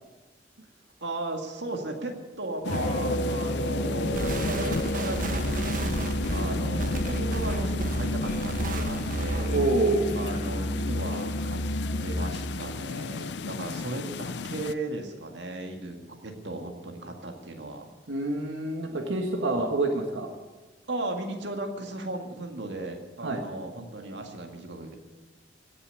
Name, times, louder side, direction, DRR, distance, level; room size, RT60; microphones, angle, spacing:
voice 1, 1.0-9.5 10.1-11.6 12.0-17.9 19.5-19.7 20.9-25.0, right 2 dB, 70° right, 3 dB, 1.9 m, -36 dB
sound 1, 2.6-14.7, left 4 dB, 65° left, 0.5 m, -34 dB
Musical instrument, 2.7-12.6, equal, 45° left, 1.5 m, -31 dB
sound 2, 4.1-9.6, right 2 dB, 45° right, 1.1 m, -34 dB
voice 2, 9.5-10.1 18.1-20.3 23.2-23.4, right 2 dB, 90° right, 3 dB, 1.6 m, -27 dB
16.5 x 7.1 x 9.6 m, 1.2 s
head